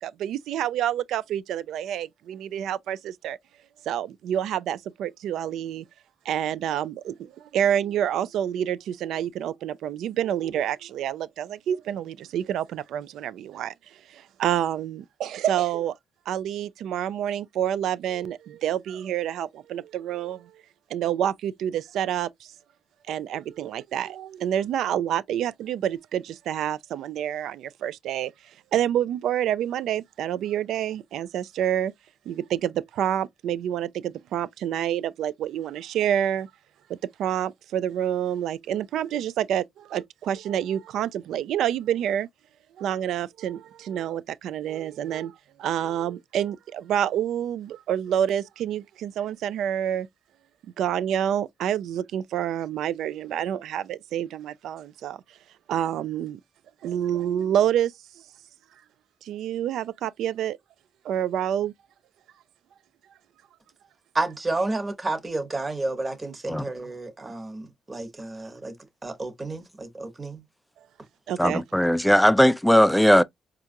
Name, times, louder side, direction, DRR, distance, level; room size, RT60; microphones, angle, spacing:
voice 1, 0.0-3.4 3.9-5.8 6.3-13.7 14.1-15.9 16.3-20.5 20.9-22.3 23.1-28.3 28.7-31.9 32.3-36.5 37.2-42.3 42.8-45.3 45.6-50.1 50.8-55.2 55.7-56.4 56.8-57.9 59.2-60.6 61.0-61.7 71.3-71.6, right 10 dB, 80° right, 0.3 m, -28 dB
voice 2, 64.1-68.8 69.0-70.4, right 2 dB, 25° right, 1.1 m, -31 dB
voice 3, 71.4-73.2, equal, ahead, 0.3 m, -18 dB
4.5 x 2.4 x 2.6 m
cardioid pair, 90°, 0 cm